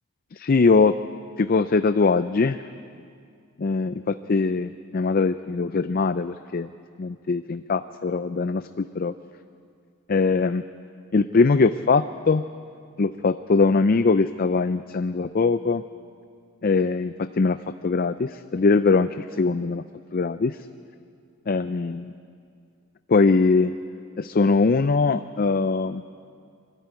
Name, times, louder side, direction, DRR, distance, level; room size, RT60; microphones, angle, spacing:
voice 1, 0.3-0.9 1.4-2.6 3.6-6.7 7.0-9.1 10.1-10.6 11.1-12.4 13.0-15.8 16.6-17.6 17.8-19.8 20.1-20.6 21.5-22.1 23.1-23.7 24.2-26.0, left 4 dB, 45° left, 11 dB, 0.4 m, -21 dB
24.5 x 13.5 x 9.5 m, 2.3 s
head